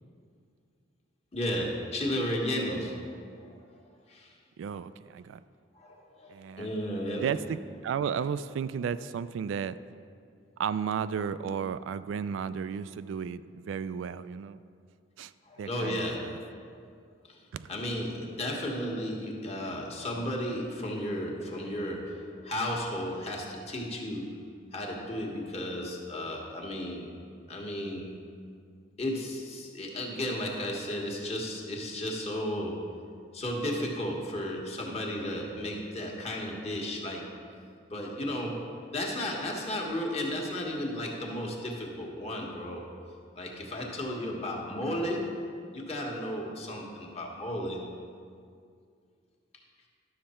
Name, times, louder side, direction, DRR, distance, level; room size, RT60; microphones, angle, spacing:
voice 1, 1.3-3.6 4.1-4.3 5.8-7.3 15.4-16.7 17.3-17.4 17.7-24.3 24.7-27.1 27.5-28.0 29.0-32.9 33.3-37.3 37.9-42.8 43.3-45.4 45.7-47.9, left 1 dB, 35° left, -1 dB, 1.3 m, -34 dB
voice 2, 4.6-5.4 6.3-6.7 7.1-7.6 7.8-9.7 10.6-14.6 15.2-15.3 15.6-16.4 17.5-17.7, right 7 dB, 85° right, 15 dB, 0.3 m, -33 dB
11.5 x 6.5 x 4.3 m, 2.2 s
head